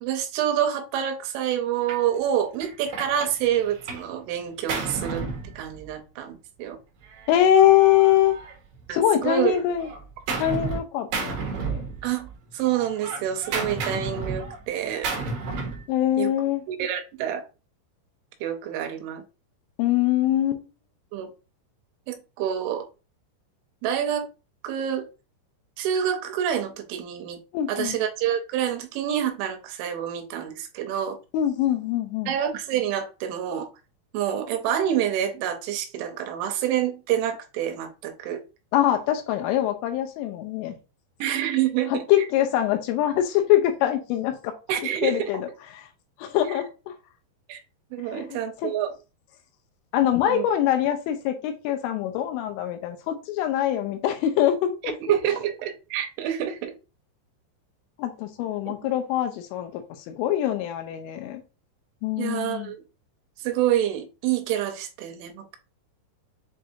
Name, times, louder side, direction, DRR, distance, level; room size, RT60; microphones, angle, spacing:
voice 1, 0.0-5.3 5.6-6.8 8.9-9.5 12.0-15.1 16.2-16.3 16.7-17.5 18.4-19.2 21.1-21.3 22.1-22.9 23.8-24.3 24.6-25.1 25.8-27.4 27.7-31.2 32.3-33.7 34.1-38.4 41.2-42.0 44.7-45.3 46.5-46.6 47.5-47.6 47.9-48.9 50.2-50.4 54.8-56.7 58.7-58.8 62.2-62.8 63.4-65.6, right 10 dB, 80° right, 3.0 m, -27 dB
Gunshot gunfire, 1.9-2.1 2.6-4.1 4.4-6.1 7.0-8.9 9.2-10.8 11.1-12.3 12.6-15.9, right 4 dB, 65° right, 2.4 m, -32 dB
voice 2, 7.3-8.4 8.9-9.9 10.4-11.8 15.9-16.6 19.8-20.6 27.5-28.0 31.3-32.3 38.7-40.7 41.9-44.5 45.0-45.8 46.2-47.0 48.1-48.7 49.9-54.9 58.0-61.4 62.0-62.7, left 11 dB, 80° left, 3.0 m, -23 dB
7.7 x 2.6 x 2.6 m
omnidirectional pair, 5.6 m